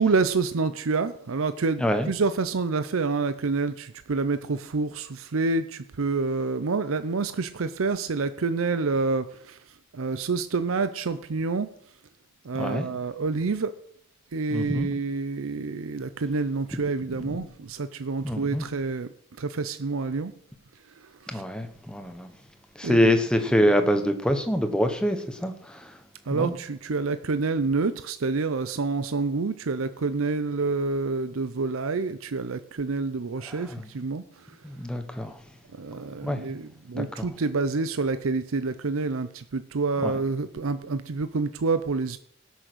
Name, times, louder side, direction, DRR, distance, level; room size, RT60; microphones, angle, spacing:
voice 1, 0.0-9.6 9.9-11.7 12.4-13.7 14.3-19.1 19.4-20.3 21.0-21.4 22.8-23.1 26.3-34.2 35.7-42.2, right 4 dB, 80° right, 0.6 m, -28 dB
voice 2, 1.8-2.1 12.5-12.9 14.5-14.9 18.2-18.6 21.3-22.3 22.8-25.8 26.3-26.5 33.7-33.8 34.6-35.3 36.2-36.4 36.9-37.3 40.0-40.1, equal, 5° left, 1.0 m, -25 dB
18.0 x 6.4 x 6.2 m
head